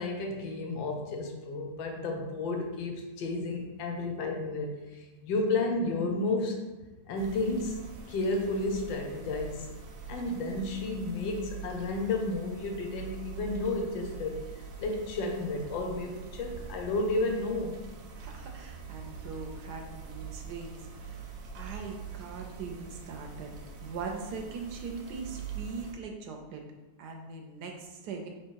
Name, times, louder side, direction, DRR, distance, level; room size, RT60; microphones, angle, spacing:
voice 1, 0.0-6.7 7.1-9.7 10.1-14.4 14.8-17.7, left 2 dB, 85° left, 2 dB, 1.4 m, -32 dB
sound 1, 7.2-25.9, right 6 dB, 90° right, 1.4 m, -44 dB
voice 2, 18.2-21.3 21.5-23.5 23.8-26.6 27.0-28.3, right 4 dB, 75° right, 3 dB, 1.0 m, -41 dB
3.4 x 3.0 x 4.5 m, 1.1 s
omnidirectional pair, 2.0 m